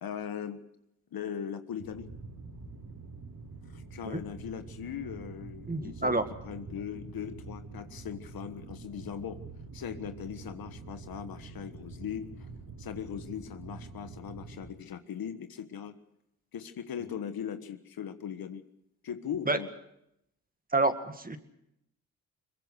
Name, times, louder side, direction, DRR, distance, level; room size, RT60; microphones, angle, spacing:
voice 1, 0.0-0.6 1.1-2.1 3.7-9.4 9.7-12.5 12.8-15.9 16.5-18.6 19.0-19.7, left 8 dB, 75° left, 10 dB, 1.4 m, -39 dB
sound 1, 1.8-14.7, right 3 dB, 70° right, 6.7 m, -46 dB
voice 2, 5.7-6.2 19.5-19.6 20.7-21.4, right 2 dB, 25° right, 8 dB, 2.0 m, -28 dB
22.0 x 21.0 x 6.4 m, 0.79 s
cardioid pair, 55°, 36 cm